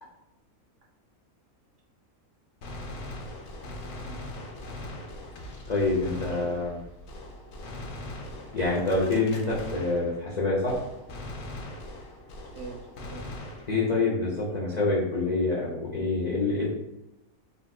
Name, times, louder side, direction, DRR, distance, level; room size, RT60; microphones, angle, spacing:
Gunshot gunfire, 2.6-10.4 10.7-14.0, left 1 dB, 65° left, 0.7 m, -41 dB
voice 1, 4.0-4.8 6.4-6.8 8.2-8.4 9.1-9.3 12.5-13.3, right 3 dB, 65° right, -1 dB, 0.8 m, -46 dB
voice 2, 5.7-6.8 8.5-10.8 13.7-16.7, left 3 dB, 90° left, -6 dB, 0.3 m, -26 dB
3.6 x 2.3 x 2.2 m, 0.93 s
omnidirectional pair, 1.5 m